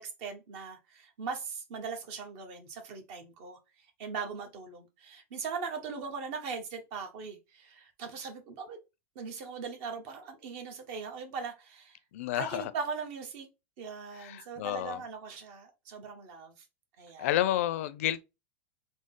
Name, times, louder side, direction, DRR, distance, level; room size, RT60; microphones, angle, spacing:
voice 1, 0.0-3.6 4.0-8.8 9.1-12.0 12.3-13.5 13.8-16.6 17.0-17.3, right 5 dB, 55° right, 1.1 m, -40 dB
voice 2, 12.1-12.7 14.1-15.0 17.2-18.2, left 13 dB, 70° left, 0.4 m, -30 dB
3.6 x 2.0 x 3.7 m
supercardioid pair, 130°, 8 cm